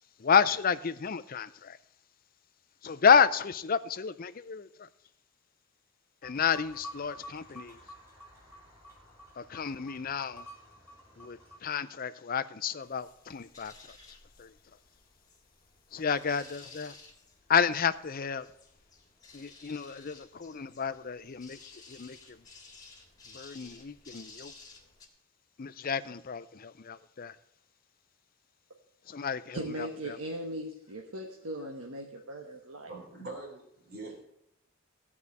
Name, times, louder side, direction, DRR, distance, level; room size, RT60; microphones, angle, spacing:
voice 1, 0.2-1.8 2.8-4.9 6.2-7.8 9.4-10.5 11.2-14.0 14.4-14.5 15.9-16.9 17.5-18.5 19.3-22.4 23.3-24.5 25.6-27.4 29.1-30.2, left 6 dB, 40° left, 0.5 m, -30 dB
sound 1, 6.2-11.6, equal, 10° right, 4.2 m, -50 dB
sound 2, 12.8-25.1, left 4 dB, 15° left, 1.8 m, -55 dB
voice 2, 29.5-32.9, right 1 dB, 70° right, 1.2 m, -39 dB
voice 3, 32.9-34.2, right 2 dB, 45° right, 3.3 m, -43 dB
14.5 x 4.9 x 8.3 m
head